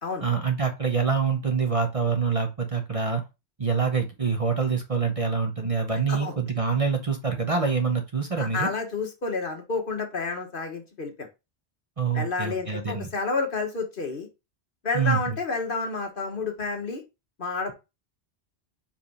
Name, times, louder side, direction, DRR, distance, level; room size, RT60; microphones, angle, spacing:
voice 1, 0.2-3.2 3.6-8.7 12.0-13.1 14.9-15.2, right 5 dB, 35° right, 4 dB, 0.9 m, -25 dB
voice 2, 8.4-11.3 12.1-14.3 14.8-17.0 17.4-17.7, left 4 dB, 50° left, 4 dB, 1.4 m, -30 dB
5.1 x 3.5 x 5.3 m, 0.26 s
omnidirectional pair, 1.1 m